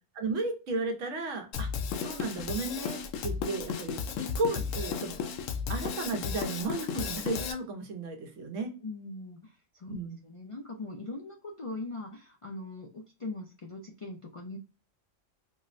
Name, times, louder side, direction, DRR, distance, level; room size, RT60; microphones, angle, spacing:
voice 1, 0.2-1.7 2.0-5.2 5.7-8.7 9.9-10.2, right 3 dB, 80° right, 5 dB, 1.1 m, -34 dB
Drum kit, 1.5-7.5, left 6 dB, 85° left, 0.9 m, -34 dB
voice 2, 8.8-10.0 10.2-14.6, left 2 dB, 55° left, 0 dB, 0.3 m, -41 dB
4.3 x 2.1 x 2.4 m, 0.32 s
omnidirectional pair, 1.3 m